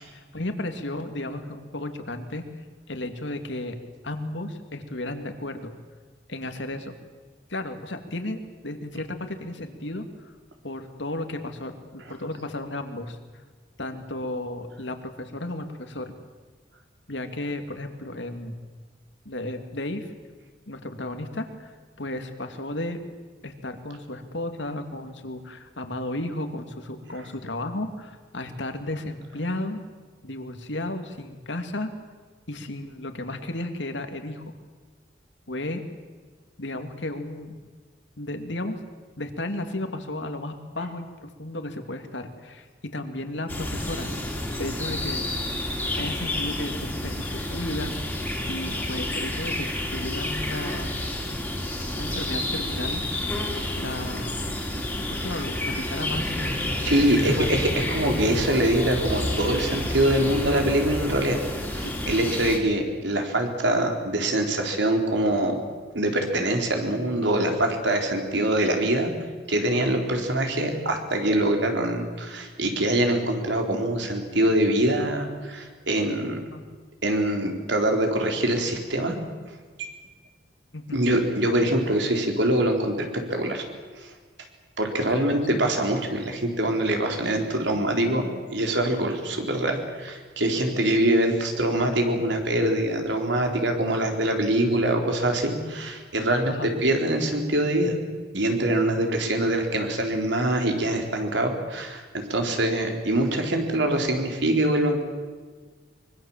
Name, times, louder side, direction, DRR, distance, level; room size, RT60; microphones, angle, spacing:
voice 1, 0.3-2.4 2.9-3.8 4.0-5.7 6.3-7.0 7.5-10.3 10.6-13.2 13.8-16.1 17.1-18.6 19.3-20.1 20.7-21.7 22.0-23.0 23.4-29.8 30.2-31.9 32.5-34.4 35.5-35.8 36.6-37.6 38.2-38.8 39.2-44.1 44.6-45.3 46.0-47.9 48.5-49.7 49.9-51.0 51.9-53.0 53.8-54.4 55.1-56.4 56.9-57.5 61.8-61.9 76.5-76.6 80.7-81.0 85.2-85.7 96.5-96.7, left 1 dB, 75° left, 7 dB, 2.4 m, -33 dB
sound 1, 43.5-62.6, left 1 dB, 10° left, 3.2 m, -30 dB
sound 2, 56.1-61.1, equal, 20° right, 4.1 m, -34 dB
voice 2, 56.8-61.4 61.7-65.6 65.9-69.1 69.5-76.4 77.0-79.2 79.8-79.9 80.9-83.6 84.0-84.1 84.8-98.0 98.3-105.0, right 1 dB, 75° right, 3 dB, 4.0 m, -24 dB
24.5 x 23.0 x 7.4 m, 1.5 s
head